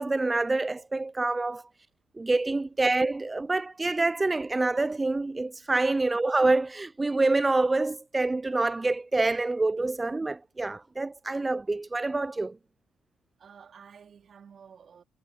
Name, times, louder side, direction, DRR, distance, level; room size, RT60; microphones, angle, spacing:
voice 1, 0.0-1.6 2.1-12.6, right 2 dB, 20° right, 0.3 m, -26 dB
voice 2, 13.4-15.0, right 7 dB, 50° right, 3.1 m, -51 dB
cardioid pair, 90°, 0 cm